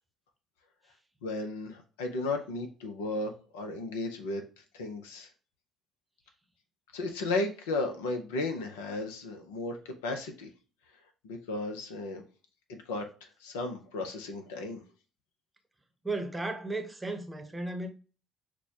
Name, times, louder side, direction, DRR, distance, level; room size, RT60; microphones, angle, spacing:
voice 1, 1.2-4.4 4.7-5.3 6.9-9.8 10.0-10.5 11.2-12.2 12.7-13.1 13.4-14.8, left 2 dB, 75° left, 0.6 m, -34 dB
voice 2, 16.0-17.9, right 2 dB, 15° right, 0.8 m, -34 dB
6.1 x 2.2 x 2.8 m
figure-of-eight pair, 50°, 0 cm